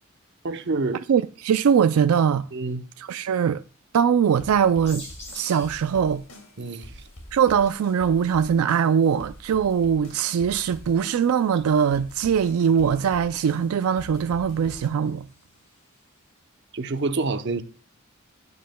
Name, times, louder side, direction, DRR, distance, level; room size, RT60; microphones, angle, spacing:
voice 1, 0.4-1.0 2.5-2.8 6.6-6.9 16.7-17.6, right 3 dB, 55° right, 0.7 m, -27 dB
voice 2, 1.1-2.5 3.0-3.6 3.9-5.0 5.3-6.2 7.3-15.3, right 7 dB, 90° right, 0.4 m, -21 dB
sound 1, 4.3-14.9, equal, 80° left, 2.7 m, -46 dB
sound 2, 4.9-16.2, left 1 dB, 30° left, 4.5 m, -50 dB
15.5 x 9.6 x 2.2 m
head